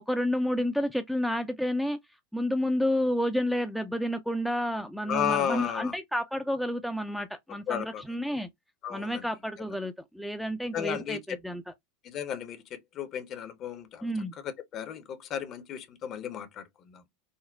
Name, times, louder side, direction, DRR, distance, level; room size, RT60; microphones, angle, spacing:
voice 1, 0.1-2.0 2.3-8.5 8.9-11.7 14.0-14.3, equal, ahead, 0.3 m, -30 dB
voice 2, 5.1-5.9 7.7-8.0 8.8-9.1 10.7-11.2 12.0-12.6 13.0-14.1 14.4-17.0, left 9 dB, 40° left, 0.6 m, -33 dB
3.8 x 2.0 x 2.2 m
figure-of-eight pair, 80°, 0 cm